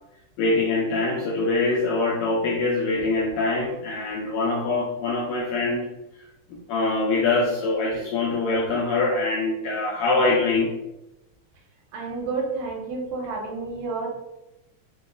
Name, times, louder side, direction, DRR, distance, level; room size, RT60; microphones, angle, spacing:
voice 1, 0.4-5.9 6.5-10.7, left 3 dB, 80° left, -3 dB, 1.6 m, -24 dB
voice 2, 11.9-14.1, right 3 dB, 80° right, 0 dB, 2.0 m, -30 dB
5.3 x 2.1 x 2.3 m, 0.92 s
omnidirectional pair, 3.6 m